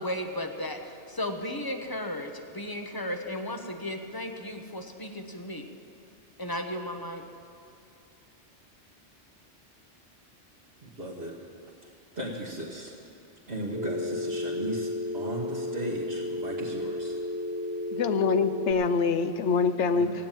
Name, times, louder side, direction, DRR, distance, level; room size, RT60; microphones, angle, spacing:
voice 1, 0.0-5.7 6.4-7.2, left 1 dB, 20° left, 4 dB, 1.0 m, -35 dB
voice 2, 10.8-11.4 11.8-12.9 13.5-17.2 19.9-20.1, right 1 dB, 55° right, -5 dB, 1.7 m, -37 dB
Telephone, 13.7-18.7, left 1 dB, 75° right, 2.2 m, -33 dB
voice 3, 17.9-20.1, left 5 dB, 75° left, 10 dB, 1.1 m, -25 dB
16.0 x 9.1 x 9.0 m, 2.5 s
omnidirectional pair, 1.2 m